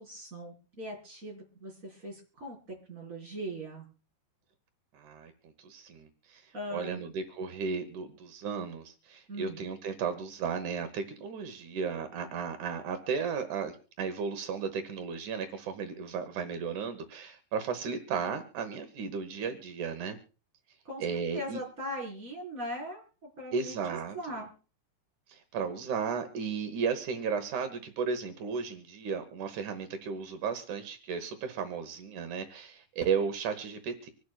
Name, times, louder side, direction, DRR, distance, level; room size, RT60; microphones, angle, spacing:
voice 1, 0.0-2.6 2.9-3.9 6.5-7.1 9.3-9.6 20.8-21.0 21.3-23.8 24.1-24.5, equal, 20° right, -2 dB, 4.3 m, -40 dB
voice 2, 4.9-5.3 5.6-6.4 6.7-20.2 21.0-21.6 23.5-24.4 25.3-34.1, right 6 dB, 80° right, 8 dB, 1.7 m, -34 dB
25.5 x 11.0 x 2.3 m, 0.37 s
omnidirectional pair, 5.0 m